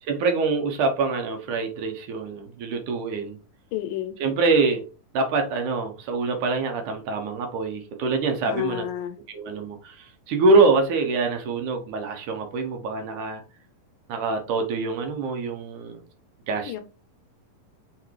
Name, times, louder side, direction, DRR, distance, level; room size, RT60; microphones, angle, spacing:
voice 1, 0.0-3.4 4.2-4.8 5.1-8.8 9.3-13.4 14.1-16.0 16.5-16.8, right 3 dB, 65° right, 2.5 m, -25 dB
voice 2, 3.7-4.2 8.5-9.1 16.7-16.8, left 12 dB, 75° left, 2.3 m, -30 dB
6.5 x 4.0 x 4.7 m
omnidirectional pair, 4.1 m